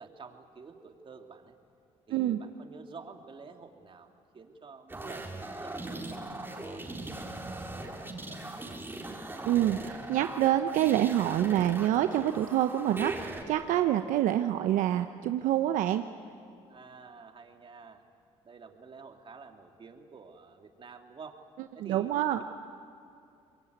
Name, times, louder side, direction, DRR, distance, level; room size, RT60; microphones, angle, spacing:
voice 1, 0.0-1.6 2.1-9.0 16.7-18.0 18.4-21.4 21.7-22.4, right 5 dB, 40° right, 5 dB, 2.6 m, -50 dB
sound 1, 4.9-13.4, right 2 dB, 15° right, 4.3 m, -40 dB
voice 2, 9.4-16.0 21.8-22.4, right 12 dB, 75° right, 8 dB, 0.8 m, -27 dB
25.0 x 22.0 x 9.4 m, 2.6 s
supercardioid pair, 75°, 13 cm